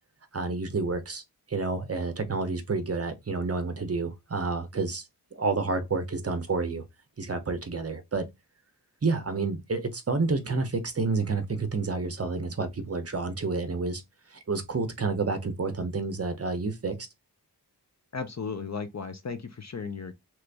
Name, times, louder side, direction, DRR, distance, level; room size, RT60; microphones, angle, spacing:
voice 1, 0.3-1.2 1.5-5.0 5.3-6.8 7.2-8.3 9.0-14.0 14.3-17.0, right 3 dB, 35° right, 0.6 m, -29 dB
voice 2, 18.1-20.1, left 5 dB, 45° left, 0.6 m, -35 dB
3.0 x 2.5 x 3.3 m
wide cardioid pair, 75°, 40 cm